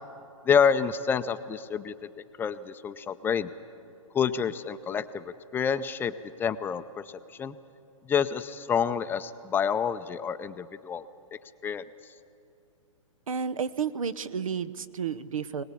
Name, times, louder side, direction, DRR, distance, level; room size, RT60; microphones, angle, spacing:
voice 1, 0.5-1.9 2.4-3.5 4.1-6.1 6.4-7.0 7.4-7.6 8.1-11.8, left 7 dB, 10° left, 11 dB, 0.5 m, -28 dB
voice 2, 13.3-15.6, right 6 dB, 85° right, 16 dB, 0.9 m, -31 dB
22.0 x 19.5 x 8.4 m, 2.6 s
hypercardioid pair, 140°, 17 cm